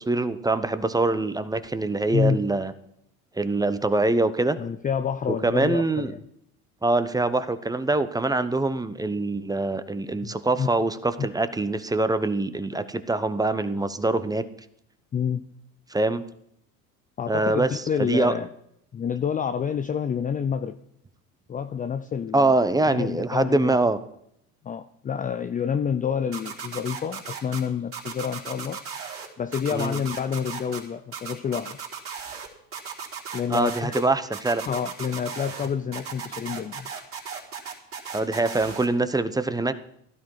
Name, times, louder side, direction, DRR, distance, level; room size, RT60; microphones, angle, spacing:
voice 1, 0.1-2.7 3.4-4.6 5.4-6.1 6.8-14.4 15.9-16.2 17.3-17.7 18.0-18.3 22.3-24.0 29.7-30.0 33.5-34.6 38.1-39.7, right 2 dB, 10° right, 12 dB, 0.9 m, -24 dB
voice 2, 2.1-2.5 4.6-6.2 10.2-10.7 11.2-11.3 15.1-15.4 17.2-18.5 18.9-20.8 21.5-22.5 22.9-23.8 24.6-28.8 29.4-31.8 33.3-34.0 34.7-36.9, left 7 dB, 20° left, 10 dB, 0.5 m, -28 dB
sound 1, 26.3-27.6 27.9-29.3 29.5-30.8 31.1-32.5 32.7-34.0 34.3-35.7 35.9-38.9, right 7 dB, 30° right, 4.1 m, -36 dB
15.5 x 12.5 x 4.8 m, 0.73 s
hypercardioid pair, 95°, 44 cm